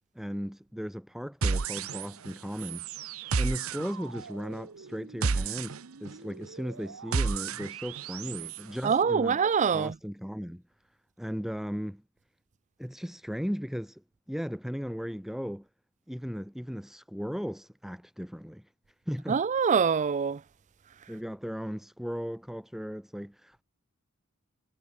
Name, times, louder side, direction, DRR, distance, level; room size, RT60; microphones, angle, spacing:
voice 1, 0.1-2.8 3.4-9.4 9.7-10.6 11.2-12.0 12.8-15.7 16.1-18.6 19.1-19.4 21.1-23.6, equal, ahead, 1.2 m, -36 dB
sound 1, 1.4-8.6, right 4 dB, 85° right, 0.8 m, -32 dB
voice 2, 8.8-10.0 19.3-20.4, right 6 dB, 35° right, 0.4 m, -24 dB
head